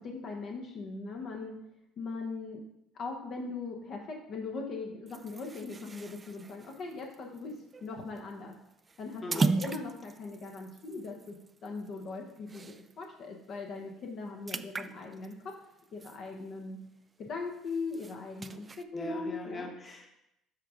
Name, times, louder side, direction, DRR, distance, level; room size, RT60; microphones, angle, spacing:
voice 1, 0.0-1.6 2.0-2.6 2.9-7.6 7.8-8.5 9.0-11.4 11.6-15.5 15.9-16.8 17.3-19.7, left 3 dB, 55° left, 1 dB, 1.1 m, -40 dB
sound 1, 5.1-13.0 13.4-13.6 13.9-16.8 17.2-18.8, right 4 dB, 25° right, 0.3 m, -38 dB
voice 2, 9.2-9.6 18.9-20.1, left 1 dB, 25° left, 2 dB, 1.3 m, -40 dB
7.7 x 3.8 x 5.0 m, 0.82 s
supercardioid pair, 90°, 0 cm